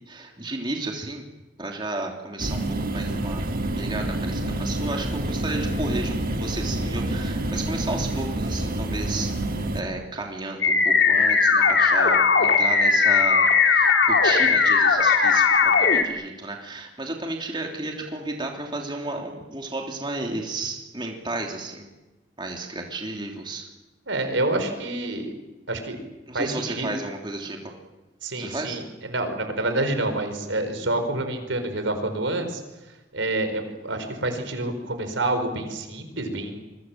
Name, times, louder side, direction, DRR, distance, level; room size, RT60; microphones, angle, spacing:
voice 1, 0.1-1.2 1.6-3.4 3.8-21.9 22.4-23.6 26.3-27.7 28.4-28.8, right 2 dB, 25° right, 1 dB, 3.2 m, -33 dB
sound 1, 2.4-9.8, right 1 dB, 50° right, 2.0 m, -28 dB
sound 2, 10.6-16.0, left 5 dB, 70° left, 2.9 m, -18 dB
voice 2, 24.1-25.3 25.7-26.0 26.3-26.9 28.2-32.6 33.1-36.6, right 2 dB, 85° right, 7 dB, 5.0 m, -27 dB
27.5 x 23.0 x 7.6 m, 1.1 s
head